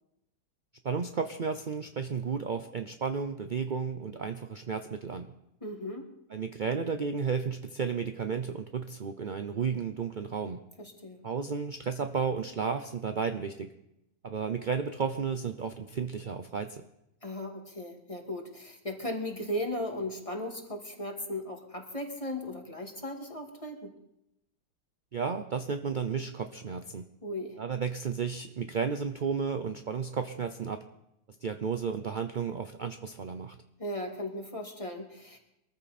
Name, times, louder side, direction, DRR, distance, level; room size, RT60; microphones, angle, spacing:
voice 1, 0.8-5.3 6.3-10.6 11.2-13.7 14.2-16.8 25.1-27.0 27.6-30.8 31.4-33.6, right 6 dB, 55° right, 7 dB, 0.5 m, -33 dB
voice 2, 5.6-6.1 10.8-11.2 17.2-23.9 27.2-27.6 33.8-35.4, left 1 dB, 20° left, 2 dB, 2.2 m, -37 dB
23.0 x 14.0 x 4.3 m, 0.83 s
omnidirectional pair, 1.8 m